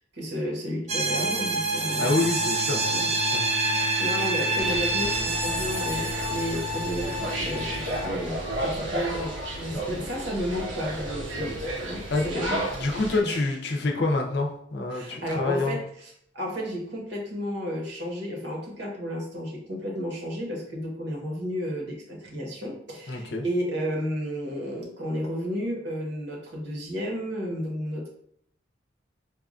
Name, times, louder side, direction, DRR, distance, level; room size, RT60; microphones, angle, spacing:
voice 1, 0.1-2.1 2.9-3.1 3.4-3.6 4.0-12.6 13.2-13.5 14.9-28.1, equal, 65° right, -2 dB, 1.1 m, -32 dB
sound 1, 0.9-8.1, right 2 dB, 35° right, 0.4 m, -27 dB
voice 2, 2.0-3.4 9.7-9.8 12.1-12.3 12.8-15.8 23.1-23.4, left 2 dB, 60° left, 1 dB, 0.5 m, -27 dB
sound 2, 4.6-13.2, right 1 dB, 85° right, 1.1 m, -33 dB
4.6 x 2.3 x 2.5 m, 0.68 s
head